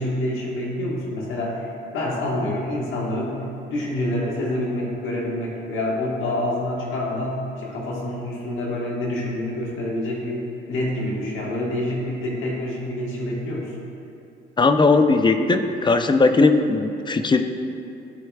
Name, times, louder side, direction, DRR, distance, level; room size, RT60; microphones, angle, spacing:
voice 1, 0.0-3.4 3.7-13.8, left 1 dB, 80° left, -3 dB, 1.4 m, -27 dB
voice 2, 14.6-17.4, left 3 dB, 25° left, 8 dB, 0.4 m, -18 dB
13.5 x 4.5 x 2.3 m, 2.7 s
cardioid pair, 90°, 20 cm